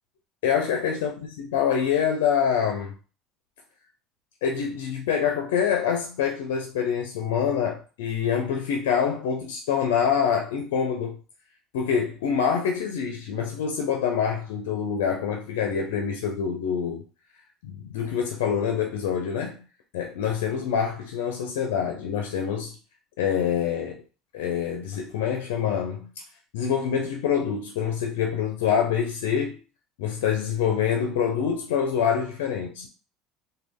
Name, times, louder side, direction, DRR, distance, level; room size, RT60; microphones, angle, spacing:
voice 1, 0.4-1.1 1.4-2.9 4.4-11.2 11.7-17.0 17.6-19.6 19.9-22.7 23.2-24.0 24.3-26.1 26.5-29.6 30.0-32.9, left 7 dB, 90° left, 0.5 m, -26 dB
3.0 x 2.3 x 3.5 m
supercardioid pair, 105°, 0 cm